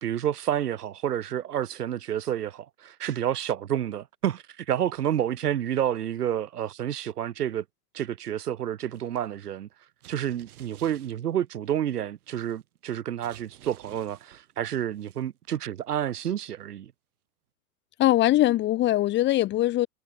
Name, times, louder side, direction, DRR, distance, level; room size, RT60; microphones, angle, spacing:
voice 1, 0.0-7.6 7.9-9.7 10.1-16.9, right 10 dB, 90° right, 1.4 m, -29 dB
sound 1, 8.9-9.2 10.0-11.7 12.2-12.9 13.2-15.5 15.8-16.1, right 13 dB, 70° right, 5.8 m, -53 dB
voice 2, 18.0-19.9, left 15 dB, 25° left, 0.7 m, -21 dB
hypercardioid pair, 115°, 45 cm